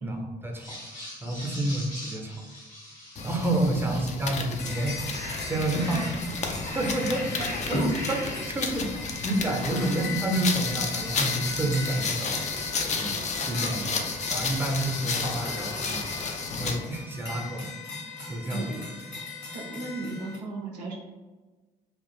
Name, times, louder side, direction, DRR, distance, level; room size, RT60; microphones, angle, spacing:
voice 1, 0.4-0.7 1.2-2.4 3.2-6.0 6.5-7.8 8.1-8.9 9.2-12.3 12.9-13.1 13.4-14.0 14.3-16.2 16.6-17.7 18.3-18.7, right 1 dB, 10° right, 1 dB, 0.6 m, -29 dB
sound 1, 0.5-4.4 4.8-13.5, left 1 dB, 85° left, 1.0 m, -42 dB
sound 2, 3.2-3.9 4.4-20.4, left 2 dB, 55° left, 1.0 m, -38 dB
sound 3, 3.2-16.9, left 4 dB, 35° left, 0.4 m, -32 dB
voice 2, 5.8-6.1 18.5-18.9 19.5-20.9, right 2 dB, 85° right, 0 dB, 0.4 m, -36 dB
2.3 x 2.1 x 3.1 m, 1.2 s
hypercardioid pair, 45°, 21 cm